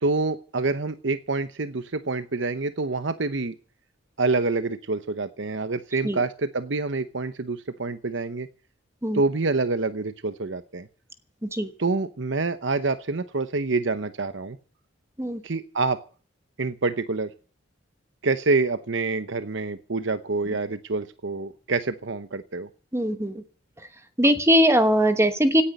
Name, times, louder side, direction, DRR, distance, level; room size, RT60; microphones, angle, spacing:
voice 1, 0.0-3.5 4.2-8.5 9.1-10.9 11.8-14.6 15.4-16.0 16.6-17.3 18.2-22.7, right 3 dB, 70° right, 11 dB, 0.9 m, -27 dB
voice 2, 22.9-23.4 24.2-25.6, equal, 15° right, 9 dB, 1.1 m, -20 dB
17.5 x 10.0 x 6.6 m, 0.41 s
head